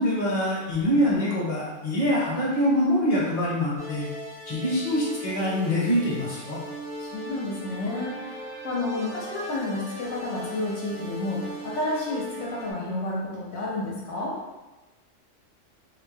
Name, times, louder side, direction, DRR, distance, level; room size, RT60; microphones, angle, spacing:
voice 1, 0.0-4.1 4.5-6.6, equal, 35° left, -6 dB, 0.8 m, -24 dB
sound 1, 3.8-12.7, equal, 5° right, 0.5 m, -39 dB
voice 2, 7.0-14.4, left 2 dB, 70° left, -4 dB, 0.9 m, -31 dB
2.5 x 2.1 x 3.2 m, 1.1 s
omnidirectional pair, 1.3 m